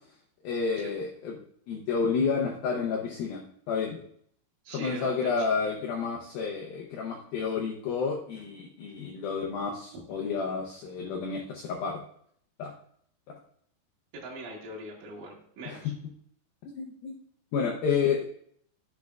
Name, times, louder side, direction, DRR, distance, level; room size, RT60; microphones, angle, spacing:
voice 1, 0.4-1.4 1.7-3.4 3.7-4.0 4.7-12.0 12.6-12.7 15.7-15.8 16.8-17.1 17.5-18.2, left 5 dB, 90° left, -1 dB, 2.0 m, -30 dB
voice 2, 4.7-5.5 14.1-15.9, right 2 dB, 85° right, -4 dB, 4.1 m, -41 dB
11.5 x 8.4 x 2.4 m, 0.65 s
omnidirectional pair, 5.4 m